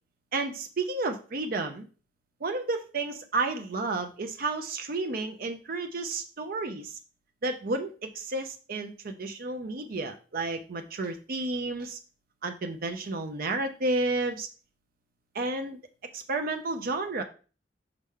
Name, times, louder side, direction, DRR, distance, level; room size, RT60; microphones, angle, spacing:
voice 1, 0.3-1.8 2.4-7.0 7.4-12.0 12.4-14.5 15.3-15.8 16.1-17.2, right 3 dB, 55° right, 6 dB, 0.6 m, -31 dB
5.5 x 4.8 x 3.6 m, 0.36 s
head